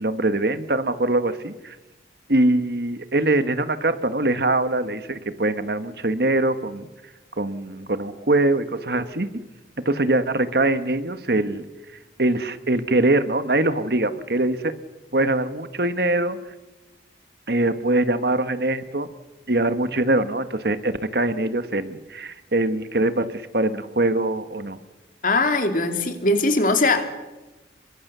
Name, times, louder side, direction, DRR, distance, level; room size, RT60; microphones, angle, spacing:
voice 1, 0.0-1.8 2.3-6.9 7.4-9.3 9.8-11.6 12.2-14.7 15.1-16.4 17.5-19.1 19.5-24.8, right 2 dB, 60° right, 11 dB, 1.5 m, -23 dB
voice 2, 25.2-27.0, left 2 dB, 50° left, 6 dB, 2.7 m, -20 dB
29.5 x 23.0 x 6.9 m, 1.1 s
head